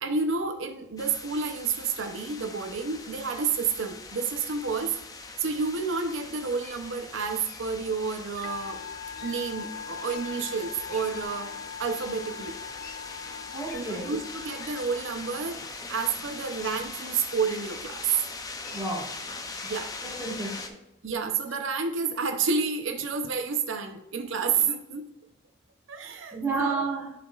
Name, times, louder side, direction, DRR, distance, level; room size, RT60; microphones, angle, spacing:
voice 1, 0.0-5.0 5.4-8.8 9.2-11.5 11.8-12.6 13.7-15.6 15.9-18.1 19.6-19.9 21.0-25.1 25.9-26.9, right 5 dB, 80° right, 6 dB, 0.7 m, -30 dB
sound 1, 1.0-20.7, left 3 dB, 20° left, 0.5 m, -41 dB
Wild animals, 6.6-6.8 7.5-7.6 8.3-8.5 9.1-9.4 10.0-10.2 10.9-11.3 12.0-12.1 12.8-13.0 13.7-13.8 14.6-14.8 15.6-15.8 16.6-16.9 17.6-17.9 18.6-18.8 19.6-19.8 20.6-20.7 21.5-21.6 22.4-22.6, left 4 dB, 45° left, 0.9 m, -48 dB
Musical instrument, 8.4-16.1, left 7 dB, 90° left, 0.4 m, -42 dB
voice 2, 13.5-14.1 18.7-19.1 20.0-20.8 26.3-27.1, right 3 dB, 15° right, -3 dB, 1.6 m, -31 dB
11.0 x 5.0 x 2.4 m, 0.89 s
head